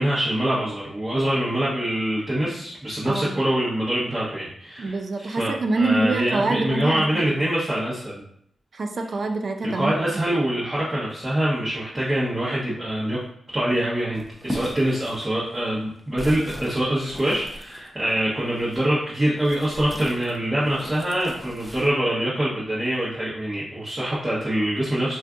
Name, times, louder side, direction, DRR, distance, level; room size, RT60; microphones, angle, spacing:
voice 1, 0.0-8.2 9.7-13.2 13.5-25.2, right 1 dB, 25° right, -8 dB, 0.9 m, -24 dB
voice 2, 3.0-3.4 4.8-7.4 8.7-9.9, right 2 dB, 55° right, 6 dB, 0.4 m, -25 dB
sound 1, 14.1-18.9 19.4-21.9, equal, 5° right, 0.6 m, -38 dB
2.4 x 2.4 x 3.6 m, 0.67 s
cardioid pair, 55°, 0 cm